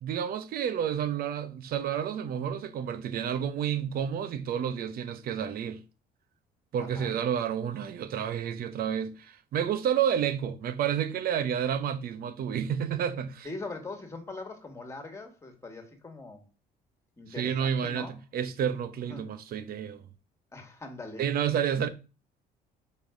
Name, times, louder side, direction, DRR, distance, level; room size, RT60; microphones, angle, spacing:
voice 1, 0.0-5.8 6.7-13.5 17.4-18.1 18.3-20.0 21.2-21.9, right 8 dB, 60° right, 0.9 m, -30 dB
voice 2, 6.8-7.1 13.4-16.5 17.2-18.2 19.1-19.3 20.5-21.2, left 3 dB, 15° left, 1.8 m, -41 dB
5.4 x 4.2 x 5.1 m
cardioid pair, 110°, 17 cm